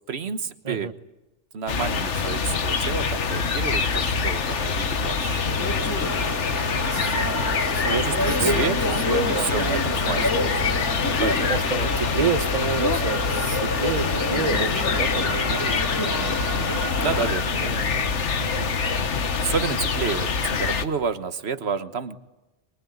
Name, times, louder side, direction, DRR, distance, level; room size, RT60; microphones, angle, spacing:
voice 1, 0.1-0.9 1.5-6.2 6.7-7.2 8.0-8.8 9.3-11.5 11.9-12.0 16.0-17.8 19.4-22.2, right 5 dB, 60° right, 11 dB, 1.5 m, -31 dB
sound 1, 1.7-20.8, left 5 dB, 75° left, 1.5 m, -25 dB
sound 2, 5.6-17.3, left 1 dB, 15° left, 3.5 m, -29 dB
voice 2, 7.6-8.5 9.1-9.5 11.5-15.7 17.6-18.1 18.4-18.7, right 5 dB, 30° right, 10 dB, 1.1 m, -29 dB
24.5 x 22.5 x 9.4 m, 1.0 s
omnidirectional pair, 1.2 m